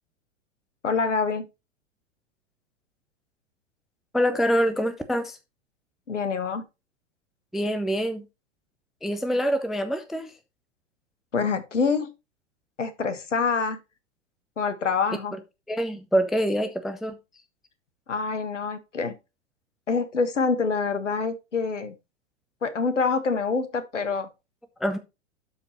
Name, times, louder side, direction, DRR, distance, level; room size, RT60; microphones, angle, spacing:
voice 1, 0.8-1.5 6.1-6.6 11.3-12.1 12.8-13.8 14.6-15.3 18.1-19.2 19.9-21.9 22.6-24.3, left 4 dB, 80° left, 1.4 m, -26 dB
voice 2, 4.1-5.4 7.5-8.2 9.0-10.3 15.7-17.2 24.8-25.0, equal, ahead, 0.3 m, -25 dB
12.5 x 4.7 x 2.9 m
figure-of-eight pair, 95°, 36 cm